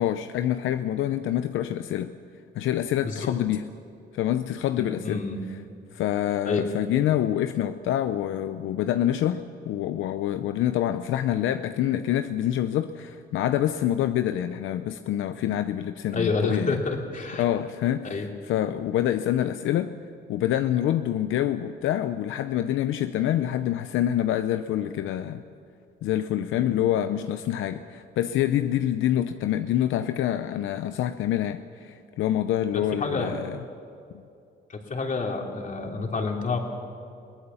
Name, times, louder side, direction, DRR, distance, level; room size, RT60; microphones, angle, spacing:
voice 1, 0.0-2.1 2.6-3.7 4.1-5.2 5.9-16.8 17.4-18.2 18.5-19.9 20.3-25.4 26.0-33.6, left 11 dB, 85° left, 9 dB, 0.7 m, -26 dB
voice 2, 3.0-3.4 4.8-5.4 6.4-6.7 16.1-17.4 18.0-18.3 26.5-26.7 32.7-33.3 34.7-36.6, left 4 dB, 40° left, 1 dB, 3.2 m, -29 dB
22.0 x 17.5 x 7.1 m, 2.5 s
cardioid pair, 90°, 20 cm